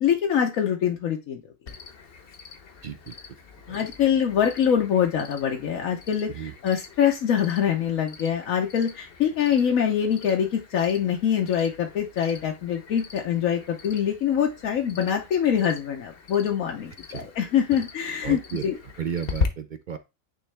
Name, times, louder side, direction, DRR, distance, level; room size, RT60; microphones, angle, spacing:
voice 1, 0.0-1.4 3.7-18.8, left 8 dB, 85° left, 2 dB, 1.3 m, -24 dB
Cricket, 1.7-19.5, left 5 dB, 50° left, 1.0 m, -40 dB
voice 2, 2.8-3.2 3.7-3.8 6.3-6.5 17.1-17.3 18.2-18.6 19.0-20.0, right 8 dB, 60° right, 10 dB, 0.5 m, -33 dB
9.1 x 3.3 x 3.3 m, 0.25 s
omnidirectional pair, 1.4 m